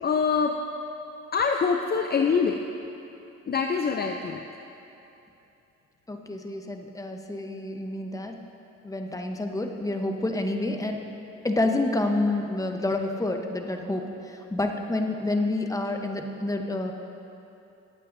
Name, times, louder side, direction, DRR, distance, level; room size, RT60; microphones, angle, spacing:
voice 1, 0.0-0.6 1.3-2.6 3.5-4.4, left 5 dB, 35° left, 4 dB, 0.5 m, -24 dB
voice 2, 6.1-8.4 8.8-11.0 11.4-16.9, left 2 dB, 10° left, 3 dB, 1.0 m, -28 dB
20.5 x 8.5 x 2.7 m, 2.9 s
cardioid pair, 90°, 30 cm